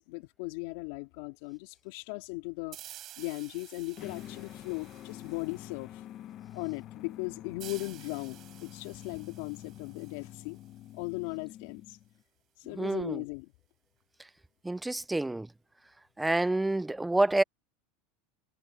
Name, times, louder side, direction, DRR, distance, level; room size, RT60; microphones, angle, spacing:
voice 1, 0.0-2.8 3.2-6.0 6.5-10.6 10.9-12.0 12.6-13.5, left 27 dB, 65° left, 3.5 m, -38 dB
sound 1, 2.7-6.1 7.6-11.1, right 13 dB, 40° right, 5.7 m, -52 dB
sound 2, 4.0-12.2, left 12 dB, 40° left, 1.2 m, -47 dB
voice 2, 12.8-13.2 14.6-15.5 16.2-17.4, right 2 dB, 5° right, 0.7 m, -28 dB
supercardioid pair, 125°, 0 cm